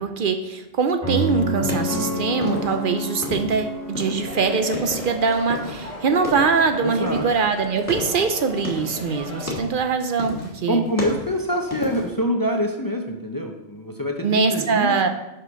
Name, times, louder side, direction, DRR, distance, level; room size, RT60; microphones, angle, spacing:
voice 1, 0.0-10.8 14.2-15.1, right 5 dB, 55° right, 7 dB, 0.6 m, -23 dB
sound 1, 1.0-5.2, equal, 10° right, 2.4 m, -28 dB
sound 2, 1.1-3.6 3.9-5.9 6.2-6.6 7.0-9.0 9.4-9.9 10.2-10.6 10.8-12.2, left 3 dB, 10° left, 1.5 m, -32 dB
sound 3, 4.2-9.5, equal, 35° right, 2.2 m, -36 dB
voice 2, 6.8-7.3 10.7-15.0, equal, 30° left, 2 dB, 0.4 m, -25 dB
5.9 x 5.6 x 5.2 m, 0.95 s
omnidirectional pair, 1.3 m